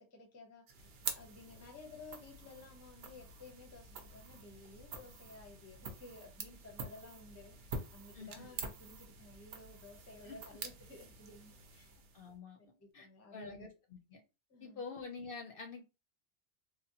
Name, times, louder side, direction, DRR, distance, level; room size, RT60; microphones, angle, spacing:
voice 1, 0.0-11.9 12.6-13.7 14.5-14.8, left 3 dB, 15° left, 0.5 m, -55 dB
sound 1, 0.7-12.4, right 4 dB, 65° right, 0.8 m, -47 dB
voice 2, 8.1-8.5 10.2-10.4 12.1-14.2 14.6-15.8, left 4 dB, 60° left, 0.7 m, -47 dB
3.4 x 2.1 x 2.7 m
omnidirectional pair, 1.2 m